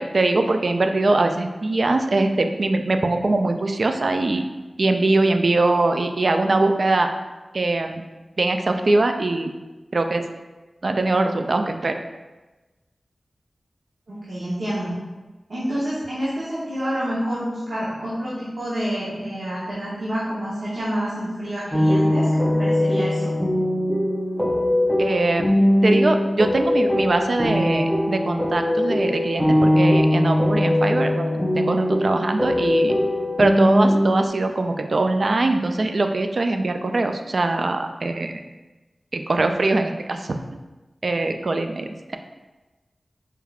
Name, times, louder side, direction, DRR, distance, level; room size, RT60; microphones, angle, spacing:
voice 1, 0.0-4.4 4.8-7.1 7.5-8.0 8.4-9.5 9.9-10.2 10.8-12.0 25.0-25.5 25.8-32.9 33.4-38.4 39.1-40.4 41.0-42.2, right 2 dB, 65° right, 6 dB, 0.3 m, -22 dB
voice 2, 14.1-14.9 15.5-23.2, equal, 80° right, -9 dB, 0.9 m, -28 dB
sound 1, 21.7-34.3, left 1 dB, 5° left, 0.5 m, -20 dB
4.5 x 3.4 x 2.4 m, 1.2 s
wide cardioid pair, 65°, 0 cm